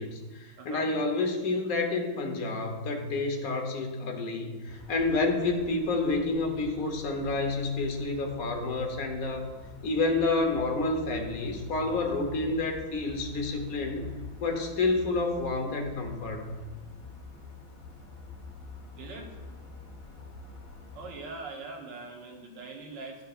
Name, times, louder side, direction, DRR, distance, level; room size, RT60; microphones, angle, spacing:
voice 1, 0.0-9.5 9.8-14.1 14.4-16.5, left 3 dB, 55° left, 4 dB, 1.2 m, -29 dB
voice 2, 0.6-0.9 19.0-19.3 20.9-23.2, right 3 dB, 70° right, 1 dB, 1.8 m, -42 dB
sound 1, 4.7-21.2, left 3 dB, 70° left, 2.1 m, -47 dB
12.5 x 5.6 x 2.4 m, 1.3 s
omnidirectional pair, 2.1 m